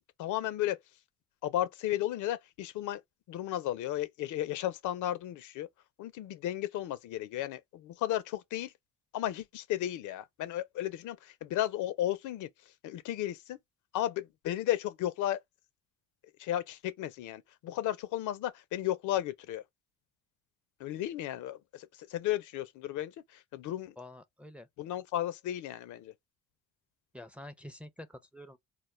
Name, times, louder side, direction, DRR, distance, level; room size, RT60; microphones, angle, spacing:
voice 1, 0.2-0.8 1.4-3.0 3.3-5.7 6.0-8.7 9.1-13.6 13.9-15.4 16.4-19.6 20.8-24.0 24.8-26.1, left 13 dB, 75° left, 0.5 m, -34 dB
voice 2, 24.0-24.7 27.1-28.6, left 1 dB, 5° right, 0.4 m, -47 dB
2.2 x 2.0 x 3.0 m
supercardioid pair, 70°, 31 cm